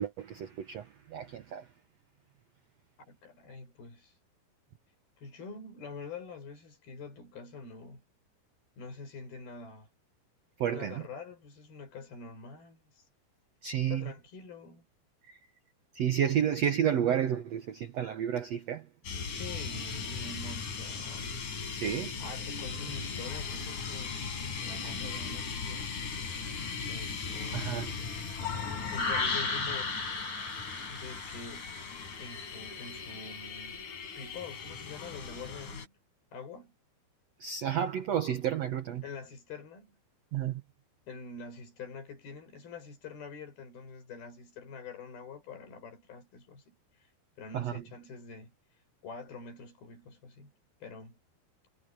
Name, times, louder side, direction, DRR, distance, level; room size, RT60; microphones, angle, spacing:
voice 1, 0.0-1.6 10.6-11.0 13.6-14.1 15.3-15.4 15.9-18.8 21.7-22.1 24.8-24.9 27.5-27.9 37.4-39.0 40.3-40.6 47.5-47.7, right 9 dB, 80° right, 1.5 m, -31 dB
voice 2, 3.0-4.1 5.2-8.0 8.8-9.9 10.7-13.0 13.9-14.8 19.3-21.4 22.2-24.2 24.6-25.9 26.9-28.0 28.8-30.0 30.9-31.7 32.2-33.8 34.2-36.0 36.3-36.7 37.8-37.9 39.0-40.0 41.1-46.7 47.0-47.1 47.4-48.5 49.0-50.5 50.8-51.2, left 4 dB, 65° left, 7.6 m, -46 dB
sound 1, 19.0-35.9, left 5 dB, 50° left, 5.2 m, -37 dB
omnidirectional pair, 4.6 m